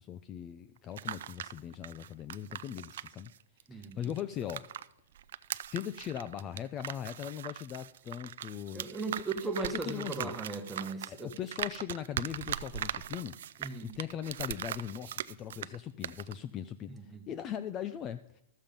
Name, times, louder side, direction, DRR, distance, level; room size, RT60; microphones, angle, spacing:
voice 1, 0.0-3.3 3.7-4.7 5.7-8.9 9.2-10.3 11.1-18.4, left 9 dB, 25° left, 13 dB, 0.3 m, -40 dB
sound 1, 0.8-4.9 5.2-15.8 16.0-16.3, right 10 dB, 70° right, 0.4 m, -40 dB
voice 2, 3.7-4.1 8.7-11.3 13.6-13.9 16.9-17.2, right 3 dB, 5° right, 4 dB, 1.1 m, -37 dB
13.5 x 7.3 x 5.2 m, 0.80 s
hypercardioid pair, 155°, 0 cm